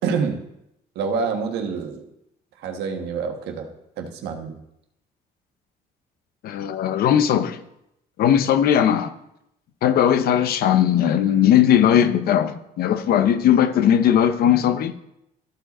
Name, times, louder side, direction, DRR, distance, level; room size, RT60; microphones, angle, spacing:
voice 1, 0.0-0.4 0.9-2.0 2.6-3.7 4.0-4.6, right 5 dB, 80° right, 1.4 m, -26 dB
voice 2, 6.4-7.6 8.2-9.1 9.8-14.9, left 10 dB, 65° left, 0.8 m, -18 dB
14.0 x 4.8 x 4.2 m
cardioid pair, 110°, 17 cm